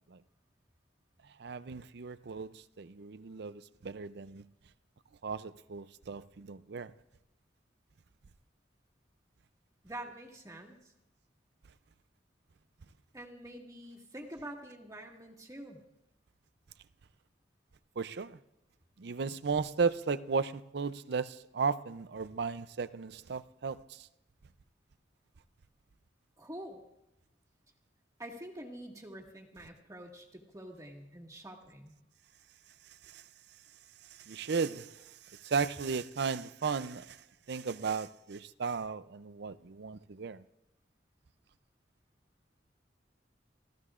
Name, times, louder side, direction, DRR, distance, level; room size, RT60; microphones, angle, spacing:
voice 1, 1.4-4.5 5.2-6.9 18.0-18.4 19.0-24.1 33.0-33.2 34.1-37.2 37.5-40.4, right 5 dB, 65° right, 0.5 m, -35 dB
voice 2, 9.8-10.9 13.1-15.8 26.4-26.8 28.2-31.9, right 1 dB, 20° right, 1.8 m, -46 dB
27.5 x 14.5 x 2.5 m
head